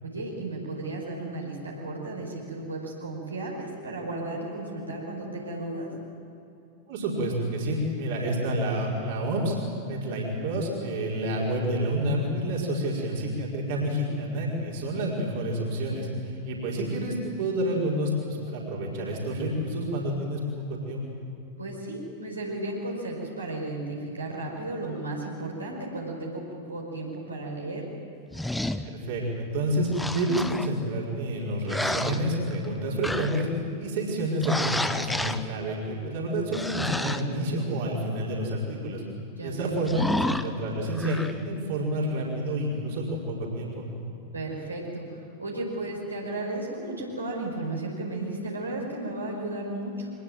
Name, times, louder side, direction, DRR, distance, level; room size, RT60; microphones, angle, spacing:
voice 1, 0.0-5.9 16.7-16.9 21.6-27.8 39.4-39.8 44.3-50.1, right 2 dB, 80° right, -2 dB, 5.1 m, -34 dB
voice 2, 6.9-9.6 9.9-21.0 28.8-33.5 33.8-39.0 39.4-43.8, right 1 dB, 50° right, -3 dB, 4.9 m, -29 dB
sound 1, 28.3-28.9 29.9-30.7 31.7-32.7 33.0-33.5 34.4-35.4 36.5-37.2 39.9-40.5 40.9-41.3, left 1 dB, 5° left, 0.9 m, -30 dB
24.0 x 20.5 x 7.8 m, 2.8 s
figure-of-eight pair, 90°, 0 cm